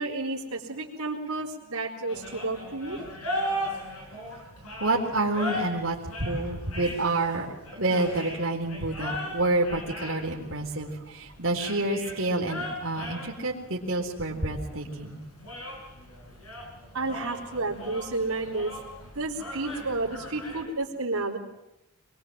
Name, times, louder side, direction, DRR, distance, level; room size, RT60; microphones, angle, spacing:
voice 1, 0.0-3.0 16.9-18.7 19.1-21.4, right 2 dB, 85° right, -2 dB, 4.0 m, -31 dB
sound 1, 2.1-20.6, equal, 80° left, 7.4 m, -38 dB
voice 2, 4.8-7.5 7.8-15.2, right 2 dB, 60° right, -1 dB, 3.9 m, -28 dB
25.0 x 21.5 x 7.7 m, 0.87 s
head